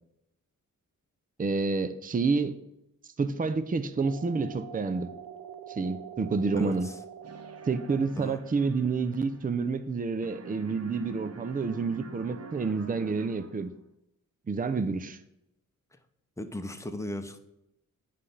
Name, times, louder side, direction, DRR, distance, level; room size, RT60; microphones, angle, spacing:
voice 1, 1.4-2.5 3.2-5.1 5.7-6.9 7.7-13.7 14.5-15.2, right 4 dB, 25° right, 11 dB, 0.6 m, -29 dB
sound 1, 4.0-8.0, right 8 dB, 90° right, 0.5 m, -45 dB
voice 2, 6.6-7.0 8.2-8.4 16.4-17.4, left 1 dB, 10° left, 6 dB, 0.8 m, -36 dB
sound 2, 7.2-10.0 10.2-13.8, right 5 dB, 45° right, 0.9 m, -48 dB
9.6 x 3.4 x 5.5 m, 0.83 s
cardioid pair, 80°, 34 cm